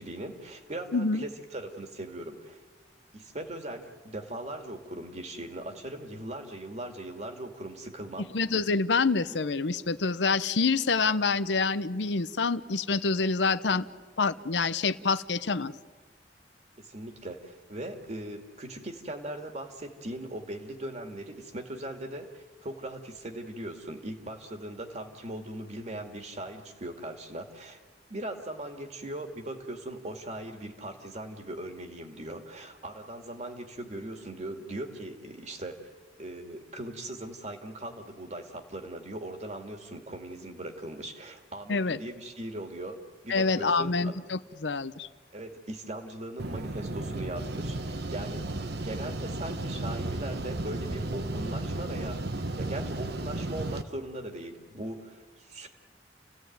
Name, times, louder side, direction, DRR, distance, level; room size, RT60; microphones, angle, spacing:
voice 1, 0.0-2.6 3.1-8.3 16.8-27.8 28.1-35.9 36.2-44.1 45.3-48.5 48.8-52.2 52.6-55.7, right 1 dB, 40° right, 5 dB, 2.3 m, -39 dB
voice 2, 0.9-1.2 8.3-13.8 14.2-15.7 41.7-42.0 43.3-45.1, left 4 dB, 80° left, 14 dB, 0.8 m, -27 dB
sound 1, 46.4-53.8, right 2 dB, 65° right, 1.1 m, -34 dB
29.5 x 16.0 x 9.4 m, 1.5 s
head